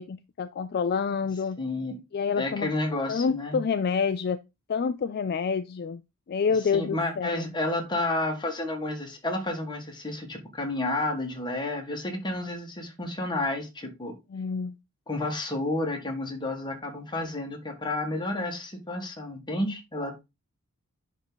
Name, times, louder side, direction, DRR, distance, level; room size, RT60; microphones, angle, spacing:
voice 1, 0.0-1.6 2.1-2.7 3.1-4.4 4.7-6.0 6.3-7.5 14.3-14.8, left 6 dB, 45° left, 0.4 m, -28 dB
voice 2, 1.6-2.0 2.3-3.6 6.5-14.2 15.1-20.2, left 2 dB, 20° left, 1.7 m, -31 dB
10.5 x 3.6 x 3.9 m
head